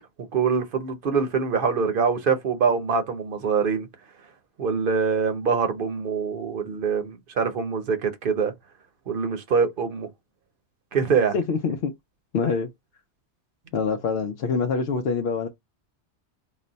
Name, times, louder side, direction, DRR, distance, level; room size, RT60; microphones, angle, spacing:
voice 1, 0.3-3.9 4.6-8.5 9.1-10.1 10.9-11.3, right 5 dB, 55° right, 0.9 m, -24 dB
voice 2, 11.3-11.9 12.3-12.7 13.7-15.5, left 5 dB, 70° left, 0.8 m, -25 dB
4.0 x 2.2 x 3.9 m
omnidirectional pair, 1.1 m